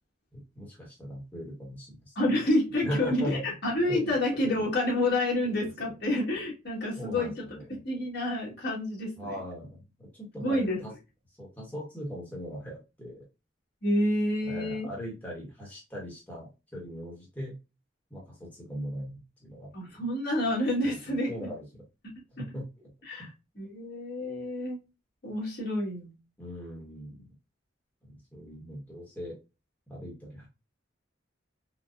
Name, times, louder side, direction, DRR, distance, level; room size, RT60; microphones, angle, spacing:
voice 1, 0.3-2.1 2.8-3.4 3.9-4.2 4.4-4.7 5.4-5.5 5.8-5.9 7.0-7.6 9.2-10.9 11.4-13.2 14.5-17.5 18.1-19.7 20.8-21.8 22.4-22.9 23.2-23.3 26.4-27.3 28.0-29.4 29.9-30.5, equal, 10° left, -4 dB, 1.1 m, -39 dB
voice 2, 2.1-9.4 10.4-10.8 13.8-14.9 19.7-21.5 22.4-22.5 23.0-24.8 25.2-26.1, left 1 dB, 60° left, -2 dB, 1.6 m, -29 dB
3.9 x 2.2 x 2.3 m, 0.27 s
head